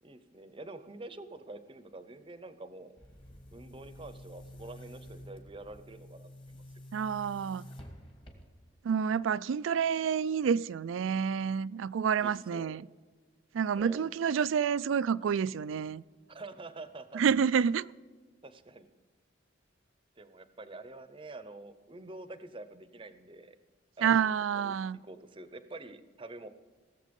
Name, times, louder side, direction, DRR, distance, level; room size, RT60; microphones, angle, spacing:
voice 1, 0.0-3.0 3.5-6.6 12.2-12.8 13.8-14.1 16.3-17.2 18.4-18.9 20.2-23.6 24.0-26.5, right 2 dB, 25° right, 0.7 m, -47 dB
Boom, 3.0-8.8, equal, 25° left, 1.6 m, -50 dB
voice 2, 6.9-7.7 8.8-12.8 13.5-16.0 17.1-17.9 24.0-25.0, right 7 dB, 80° right, 0.3 m, -29 dB
17.5 x 7.3 x 5.3 m
head